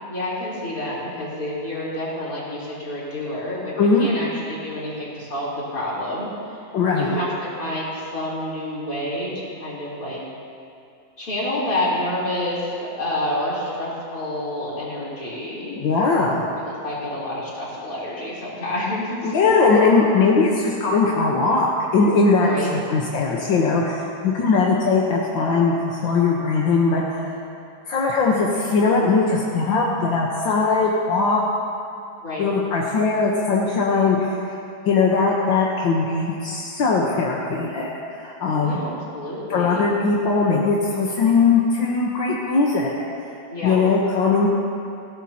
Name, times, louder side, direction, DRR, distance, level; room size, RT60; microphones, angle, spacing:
voice 1, 0.1-3.7 4.0-6.6 6.9-9.3 9.6-10.2 11.2-15.8 16.5-19.4 22.4-22.7 32.2-32.5 38.6-39.9 43.5-43.8, left 1 dB, 45° left, -7 dB, 4.2 m, -28 dB
voice 2, 3.8-4.1 6.7-7.2 15.8-16.4 19.2-27.3 27.9-31.4 32.4-34.6 34.9-37.9 38.1-38.8 39.5-42.9 43.2-43.3 43.6-44.5, left 4 dB, 80° left, -3 dB, 1.9 m, -20 dB
20.0 x 16.5 x 2.9 m, 2.6 s
omnidirectional pair, 2.0 m